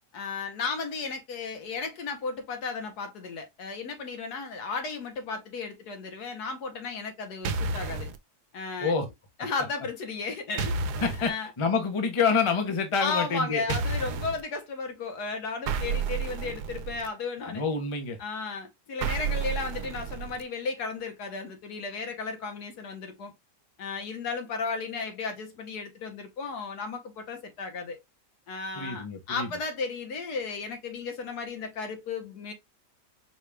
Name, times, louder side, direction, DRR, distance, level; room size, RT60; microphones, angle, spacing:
voice 1, 0.1-8.1 8.5-9.0 9.4-10.8 11.2-11.5 13.0-17.6 18.2-23.3 23.8-28.0 28.5-32.5, left 4 dB, 70° left, 1.6 m, -34 dB
sound 1, 7.4-8.2 10.6-11.3 13.7-14.4 15.7-17.1 19.0-20.4, right 4 dB, 75° right, 1.1 m, -31 dB
voice 2, 11.0-13.6 17.5-18.2 28.7-29.5, left 5 dB, 35° left, 0.5 m, -27 dB
4.7 x 2.4 x 3.2 m
omnidirectional pair, 1.7 m